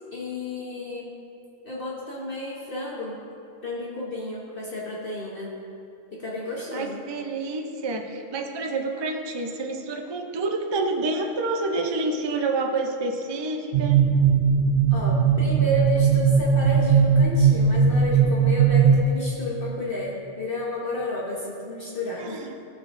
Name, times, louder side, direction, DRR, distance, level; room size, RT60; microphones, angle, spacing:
voice 1, 0.1-1.1 1.6-3.2 3.6-5.5 6.1-7.0 14.9-22.4, left 1 dB, 45° left, -4 dB, 1.1 m, -31 dB
voice 2, 6.7-14.0 22.2-22.5, right 3 dB, 45° right, 3 dB, 0.3 m, -28 dB
sound 1, 13.7-19.0, right 6 dB, 70° right, 0.9 m, -19 dB
15.0 x 6.1 x 2.6 m, 2.7 s
omnidirectional pair, 1.3 m